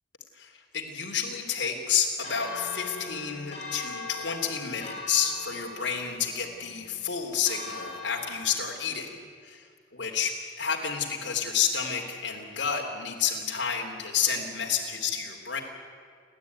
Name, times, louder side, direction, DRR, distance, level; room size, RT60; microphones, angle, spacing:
voice 1, 0.3-9.1 9.4-15.6, left 7 dB, 75° left, 1 dB, 3.3 m, -30 dB
Church bell, 2.2-8.7, left 3 dB, 35° left, 7.2 m, -41 dB
29.5 x 12.5 x 9.5 m, 2.1 s
head